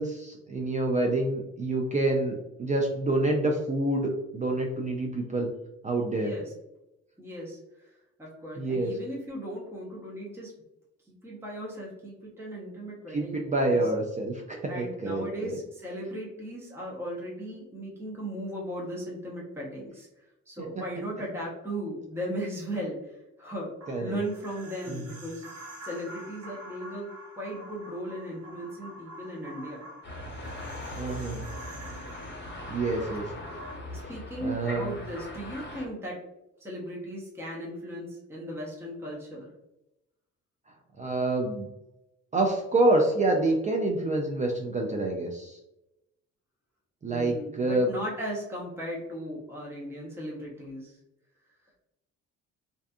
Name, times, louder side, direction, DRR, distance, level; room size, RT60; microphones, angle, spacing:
voice 1, 0.0-5.5 5.8-6.3 8.6-8.9 13.1-15.6 20.6-20.7 23.9-24.2 24.9-25.0 31.0-31.4 32.7-33.3 34.4-34.9 41.0-41.7 42.3-45.6 47.0-47.9, right 2 dB, 25° right, 1 dB, 0.4 m, -27 dB
voice 2, 6.1-6.5 7.2-7.6 8.2-10.5 11.1-13.8 14.7-20.1 20.5-23.7 24.0-29.8 33.9-36.2 36.6-39.5 47.1-51.0, equal, 10° right, -4 dB, 0.8 m, -37 dB
sound 1, 23.8-33.8, right 1 dB, 55° right, 0.9 m, -47 dB
sound 2, 30.0-35.9, left 1 dB, 35° left, 1.0 m, -40 dB
2.6 x 2.4 x 2.3 m, 0.90 s
cardioid pair, 90°, 30 cm